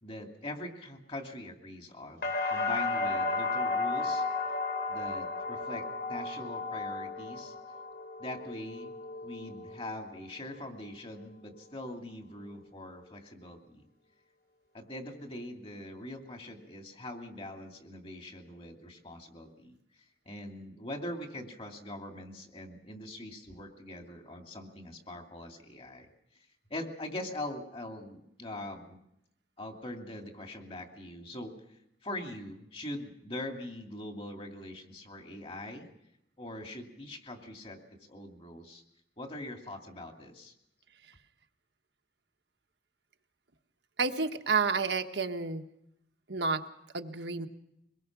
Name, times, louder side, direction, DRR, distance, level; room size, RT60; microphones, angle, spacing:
voice 1, 0.0-4.2 4.9-7.5 8.2-8.9 9.2-13.8 14.7-19.8 20.3-26.1 26.7-29.0 29.6-35.9 36.4-38.8 39.2-40.5, left 1 dB, 30° left, 3 dB, 2.7 m, -42 dB
sound 1, 2.2-10.1 10.5-11.2, left 3 dB, 60° left, 3.6 m, -34 dB
voice 2, 44.0-45.6 46.3-46.6 46.9-47.5, right 4 dB, 80° right, 6 dB, 1.4 m, -30 dB
24.0 x 21.0 x 6.1 m, 0.79 s
head